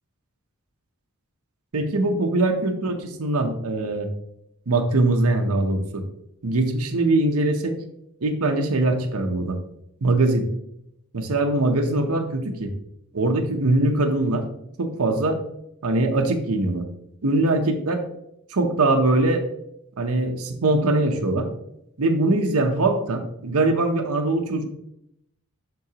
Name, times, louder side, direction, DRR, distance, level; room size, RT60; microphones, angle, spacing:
voice 1, 1.7-4.1 4.7-6.0 6.4-7.8 8.2-9.6 10.0-10.5 11.1-12.7 13.1-14.4 14.8-15.4 15.8-16.8 17.2-18.0 18.5-19.4 20.0-21.5 22.0-24.7, right 2 dB, 85° right, 3 dB, 0.8 m, -22 dB
11.5 x 3.8 x 2.9 m, 0.77 s
head